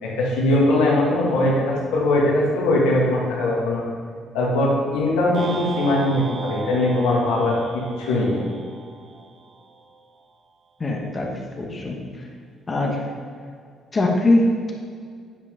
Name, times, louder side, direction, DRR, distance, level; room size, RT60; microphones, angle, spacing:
voice 1, 0.0-3.8 4.3-8.4, left 1 dB, 85° left, -4 dB, 2.0 m, -21 dB
sound 1, 5.3-9.7, right 4 dB, 45° right, 0.7 m, -34 dB
voice 2, 10.8-11.3 11.6-12.0 12.7-13.0 13.9-14.7, left 2 dB, 35° left, 0 dB, 1.6 m, -21 dB
9.5 x 5.2 x 3.7 m, 2.1 s
supercardioid pair, 65°, 0 cm